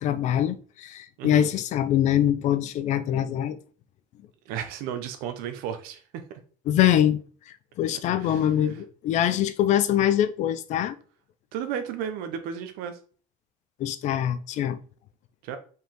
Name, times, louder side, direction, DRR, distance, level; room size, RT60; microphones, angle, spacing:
voice 1, 0.0-3.6 6.7-7.2 7.8-11.0 13.8-14.8, left 11 dB, 55° left, 0.7 m, -23 dB
voice 2, 1.2-1.5 4.4-6.4 8.2-8.8 11.5-13.0 15.4-15.6, right 8 dB, 90° right, 1.2 m, -34 dB
5.5 x 4.8 x 3.9 m
cardioid pair, 155°, 15 cm